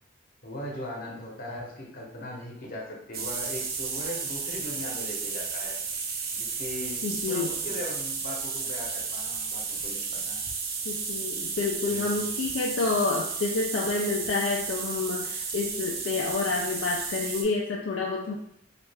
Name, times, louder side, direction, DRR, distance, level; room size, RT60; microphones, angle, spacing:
voice 1, 0.4-5.8 6.3-10.4 11.9-12.3, left 1 dB, 50° left, -2 dB, 0.8 m, -39 dB
sound 1, 3.1-17.4, right 5 dB, 50° right, 0.5 m, -33 dB
voice 2, 7.0-7.5 10.9-18.4, left 4 dB, 75° left, -1 dB, 0.4 m, -29 dB
3.2 x 2.4 x 3.3 m, 0.73 s
head